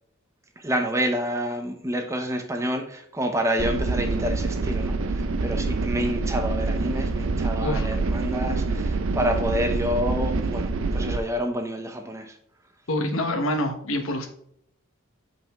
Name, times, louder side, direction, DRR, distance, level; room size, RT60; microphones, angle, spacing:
voice 1, 0.6-12.3, equal, 15° right, 5 dB, 0.8 m, -28 dB
sound 1, 3.6-11.2, right 3 dB, 70° right, 0.5 m, -26 dB
voice 2, 12.9-14.3, left 1 dB, 70° left, 5 dB, 1.2 m, -26 dB
5.6 x 5.4 x 3.5 m, 0.67 s
head